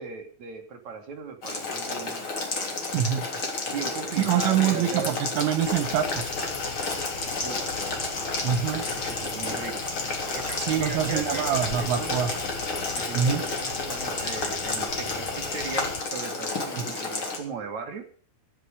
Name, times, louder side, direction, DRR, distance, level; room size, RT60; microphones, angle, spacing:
voice 1, 0.0-2.2 3.6-5.1 7.4-7.7 8.7-9.8 10.3-12.4 12.9-18.0, right 5 dB, 50° right, 3 dB, 2.5 m, -38 dB
Boiling, 1.4-17.4, left 3 dB, 30° left, 3.3 m, -31 dB
voice 2, 2.9-3.3 4.2-6.3 8.4-8.9 10.6-12.3 13.1-13.4 16.8-16.9, right 9 dB, 80° right, 11 dB, 4.1 m, -25 dB
sound 1, 5.6-16.0, left 5 dB, 85° left, 1.4 m, -39 dB
15.0 x 11.5 x 5.1 m, 0.43 s
omnidirectional pair, 5.6 m